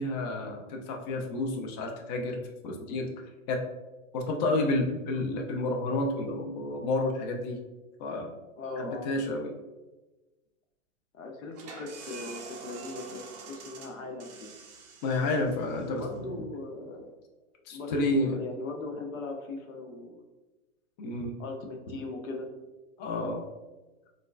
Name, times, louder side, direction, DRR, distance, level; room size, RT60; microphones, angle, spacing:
voice 1, 0.0-3.1 3.5-3.6 4.1-7.6 8.0-8.3 8.8-9.5 15.0-16.3 17.7-18.4 21.0-21.4 23.0-23.4, left 2 dB, 35° left, 2 dB, 0.4 m, -30 dB
voice 2, 8.6-9.1 11.1-14.5 16.0-17.1 17.7-20.1 21.4-22.5, left 3 dB, 90° left, 3 dB, 0.8 m, -39 dB
sound 1, 11.5-17.0, right 5 dB, 35° right, 0.4 m, -46 dB
4.5 x 2.2 x 2.3 m, 1.1 s
hypercardioid pair, 140°, 39 cm